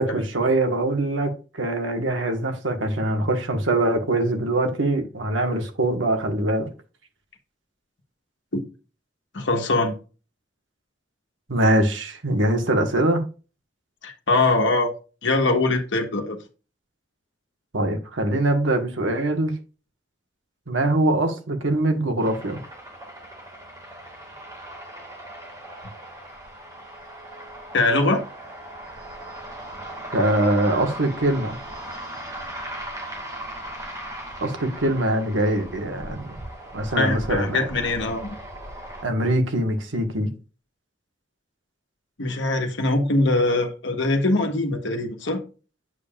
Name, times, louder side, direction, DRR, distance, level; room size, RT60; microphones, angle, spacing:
voice 1, 0.0-6.7 11.5-13.2 17.7-19.6 20.7-22.6 30.1-31.6 34.4-36.3 36.7-37.7 39.0-40.3, right 1 dB, 85° right, 1.5 m, -23 dB
voice 2, 9.3-10.0 14.0-14.9 15.2-16.4 27.7-28.2 37.0-38.4 42.2-45.4, left 2 dB, 75° left, 1.3 m, -22 dB
sound 1, 22.2-39.0, right 1 dB, 20° right, 2.0 m, -38 dB
8.2 x 6.8 x 2.4 m
head